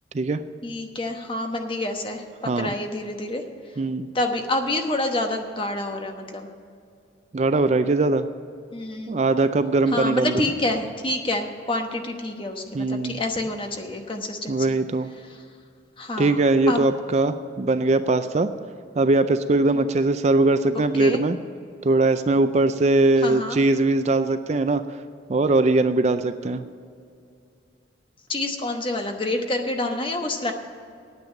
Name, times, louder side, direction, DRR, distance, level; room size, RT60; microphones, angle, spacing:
voice 1, 0.6-3.4 4.1-6.5 8.7-9.2 9.9-14.8 15.2-15.4 16.0-16.4 16.7-16.9 19.7-19.8 20.7-21.2 23.2-23.6 28.3-30.5, left 1 dB, 25° left, 4 dB, 1.1 m, -28 dB
voice 2, 3.8-4.1 7.3-8.3 9.1-10.4 12.7-13.2 14.5-15.1 16.2-18.5 19.0-21.4 21.8-24.8 25.3-26.6, right 2 dB, 35° right, 11 dB, 0.4 m, -21 dB
9.6 x 8.7 x 8.9 m, 2.4 s
head